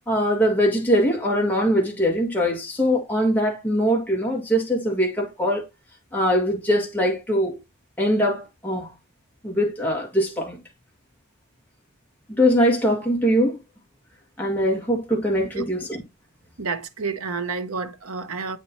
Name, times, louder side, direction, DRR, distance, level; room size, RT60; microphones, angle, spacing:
voice 1, 0.1-5.7 6.1-7.6 8.0-8.9 9.4-10.6 12.4-13.6 14.4-16.0, equal, 10° left, 1.8 m, -22 dB
voice 2, 16.6-18.6, right 4 dB, 85° right, 1.0 m, -29 dB
8.5 x 5.0 x 2.8 m
head